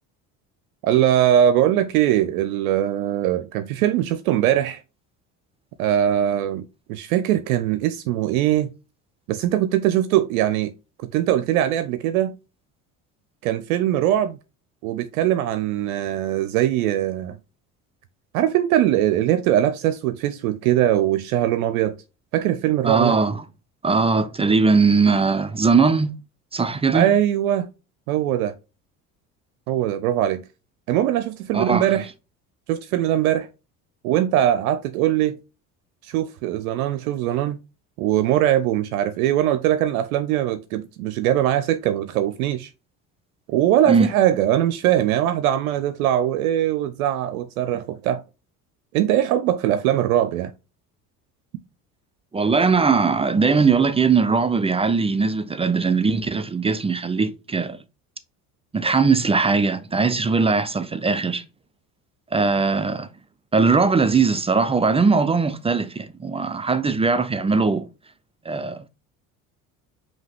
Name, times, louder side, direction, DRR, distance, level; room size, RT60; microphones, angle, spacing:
voice 1, 0.8-4.8 5.8-8.7 9.3-10.7 11.1-12.3 13.4-14.4 14.8-17.4 18.3-22.0 22.3-23.2 26.9-27.7 28.1-28.5 29.7-30.4 30.9-32.1 32.7-33.5 34.0-35.4 36.0-37.6 38.0-42.7 43.5-48.2 48.9-50.5, right 12 dB, 90° right, 0.5 m, -21 dB
voice 2, 22.8-23.4 23.8-26.1 26.5-27.1 31.5-31.9 43.9-44.1 52.3-57.8 58.7-61.4 62.3-63.1 63.5-67.9 68.5-68.9, right 4 dB, 15° right, 0.4 m, -20 dB
5.4 x 2.8 x 3.4 m
hypercardioid pair, 75°, 41 cm